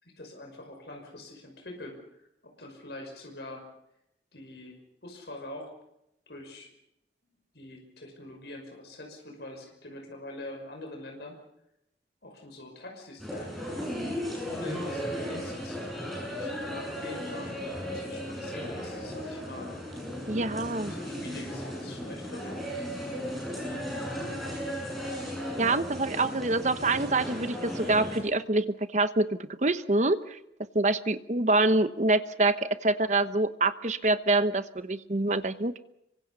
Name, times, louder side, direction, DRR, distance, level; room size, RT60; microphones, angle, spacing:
voice 1, 0.0-3.6 4.3-5.7 6.3-6.7 7.5-11.4 12.2-13.8 14.5-15.8 16.3-17.6 17.8-19.7 20.8-22.6, left 1 dB, 65° left, 2 dB, 5.9 m, -44 dB
sound 1, 13.2-28.2, equal, ahead, 7.8 m, -35 dB
voice 2, 20.3-20.9 25.6-30.4 30.7-35.8, right 2 dB, 40° right, 12 dB, 1.0 m, -26 dB
26.5 x 24.0 x 5.6 m, 0.80 s
head